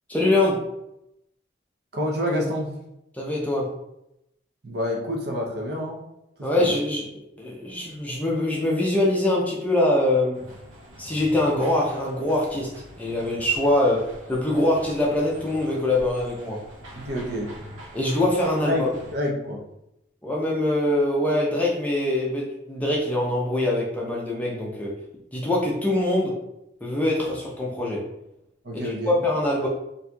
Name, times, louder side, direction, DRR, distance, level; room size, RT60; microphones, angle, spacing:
voice 1, 0.1-0.6 3.1-3.7 6.4-7.1 7.4-10.5 11.0-12.7 13.0-16.6 17.9-18.9 20.2-25.0 25.3-26.4 26.8-28.1 28.7-29.7, left 1 dB, 10° left, -4 dB, 0.5 m, -23 dB
voice 2, 1.9-2.7 4.6-6.0 6.6-6.8 16.9-17.5 18.6-18.8 19.1-19.6 28.6-29.2, left 1 dB, 55° right, -1 dB, 0.6 m, -27 dB
sound 1, 10.3-19.2, equal, 90° right, 0.8 m, -44 dB
4.1 x 2.6 x 2.3 m, 0.84 s
head